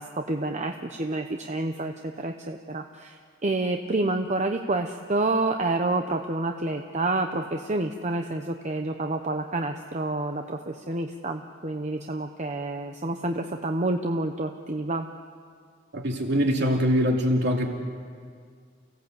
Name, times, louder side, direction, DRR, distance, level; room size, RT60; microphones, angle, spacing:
voice 1, 0.0-3.2 3.4-15.1, right 2 dB, 35° right, 5 dB, 0.9 m, -28 dB
voice 2, 15.9-17.7, equal, 55° right, 1 dB, 3.0 m, -23 dB
29.5 x 17.0 x 8.2 m, 2.1 s
head